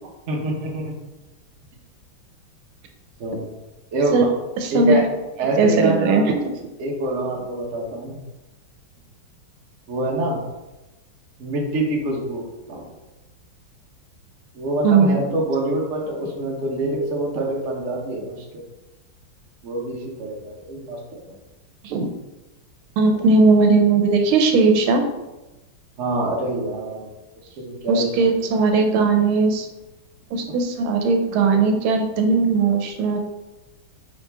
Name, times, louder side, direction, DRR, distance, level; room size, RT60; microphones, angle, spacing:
voice 1, 0.3-0.9 3.2-3.5 3.9-4.3 4.7-5.1 5.4-6.4 6.8-8.2 9.9-10.4 11.4-12.9 14.5-18.4 19.6-21.3 23.1-23.2 26.0-27.1 27.6-28.3, right 1 dB, 50° right, -1 dB, 0.9 m, -26 dB
voice 2, 4.6-5.0 5.6-6.5 14.8-15.3 21.8-22.1 23.0-25.0 27.9-29.7 30.3-33.2, right 4 dB, 85° right, 4 dB, 1.5 m, -18 dB
4.9 x 3.0 x 3.3 m, 1.0 s
omnidirectional pair, 2.3 m